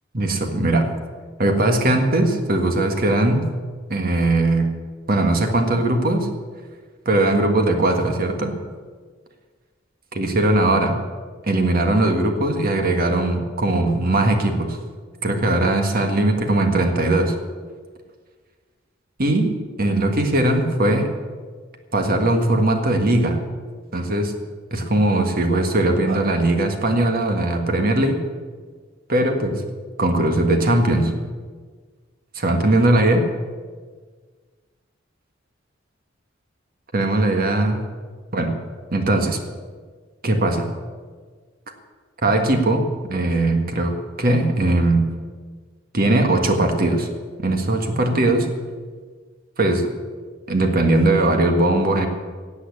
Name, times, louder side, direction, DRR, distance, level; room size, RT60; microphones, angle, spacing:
voice 1, 0.1-0.9 1.4-3.5 3.9-4.7 5.1-6.3 7.0-8.5 10.1-11.0 11.5-14.8 15.2-17.3 19.2-19.5 19.8-21.1 21.9-23.4 23.9-24.3 24.7-28.2 29.1-29.6 30.0-31.1 32.3-33.3 36.9-37.8 38.3-38.5 38.9-39.4 40.2-40.7 42.2-45.1 45.9-47.1 47.4-48.5 49.6-49.9 50.5-52.1, right 2 dB, 50° right, 5 dB, 1.7 m, -19 dB
15.5 x 8.5 x 8.4 m, 1.5 s
head